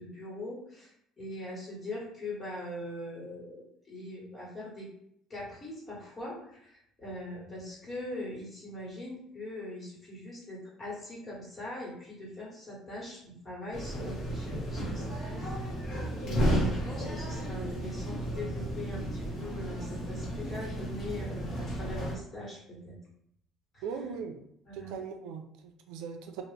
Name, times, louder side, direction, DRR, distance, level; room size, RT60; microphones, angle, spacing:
voice 1, 0.0-4.9 5.3-15.7 16.2-23.0 23.7-23.8 24.7-25.0, left 1 dB, 25° left, -5 dB, 1.4 m, -41 dB
sound 1, 13.7-22.2, equal, 45° left, 1.0 m, -33 dB
voice 2, 23.8-24.4 24.7-26.4, right 6 dB, 90° right, 5 dB, 0.4 m, -39 dB
2.9 x 2.4 x 3.3 m, 0.73 s
cardioid pair, 155°, 0 cm